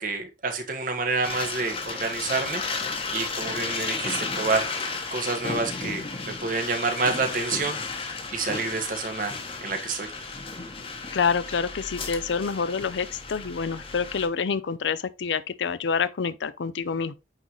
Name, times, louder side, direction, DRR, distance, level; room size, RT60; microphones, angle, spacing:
voice 1, 0.0-2.6 3.1-4.7 5.1-7.8 8.3-9.3 9.6-10.1, right 4 dB, 50° right, 1.3 m, -28 dB
sound 1, 1.2-14.3, left 4 dB, 30° left, 1.0 m, -33 dB
voice 2, 11.1-17.1, left 5 dB, 90° left, 0.5 m, -27 dB
9.0 x 3.9 x 3.0 m
head